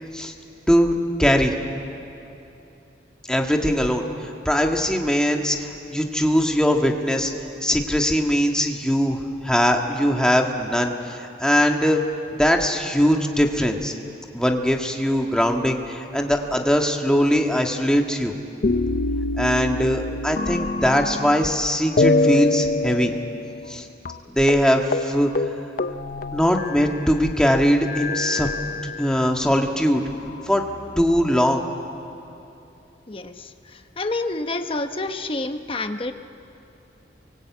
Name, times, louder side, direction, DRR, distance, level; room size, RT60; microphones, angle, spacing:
voice 1, 0.7-1.5 3.3-7.3 7.6-12.0 12.4-13.9 14.3-18.3 19.4-23.1 23.7-23.8 24.3-25.3 26.3-28.5 29.0-30.0 30.5-30.6 31.0-31.6, equal, 5° left, 2 dB, 1.6 m, -21 dB
sound 1, 18.6-21.6 22.0-23.8 24.1-24.2 24.5-24.7 24.9-25.1 25.4-27.1 27.8-29.4 30.1-31.0, left 2 dB, 45° left, 0.6 m, -25 dB
voice 2, 33.1-36.1, left 2 dB, 30° left, 7 dB, 1.0 m, -28 dB
28.5 x 24.5 x 8.5 m, 2.8 s
head